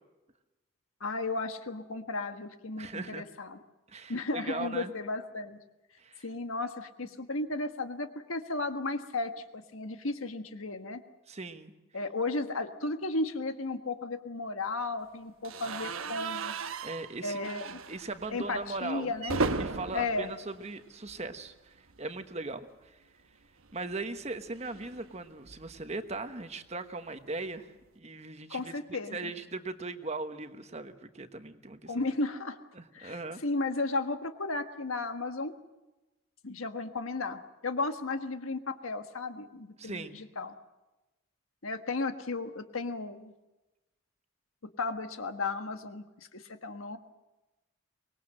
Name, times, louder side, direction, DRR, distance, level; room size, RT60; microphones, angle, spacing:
voice 1, 1.0-3.6 4.1-5.6 6.2-11.0 11.9-16.5 17.2-17.8 18.3-19.4 19.9-20.3 28.5-29.3 31.9-32.6 32.9-35.5 36.4-40.5 41.6-43.3 44.6-47.0, left 3 dB, 90° left, 7 dB, 1.5 m, -34 dB
voice 2, 2.8-3.2 3.9-4.9 6.0-6.3 11.3-11.7 16.8-17.4 17.9-19.1 19.6-23.0 23.7-32.0 32.7-33.4 39.8-40.2, right 3 dB, 30° right, 8 dB, 1.2 m, -39 dB
sound 1, 15.4-21.5 21.8-22.0 22.2-22.3 23.6-25.9, right 4 dB, 90° right, 1.1 m, -37 dB
24.5 x 20.0 x 7.7 m, 1.1 s
head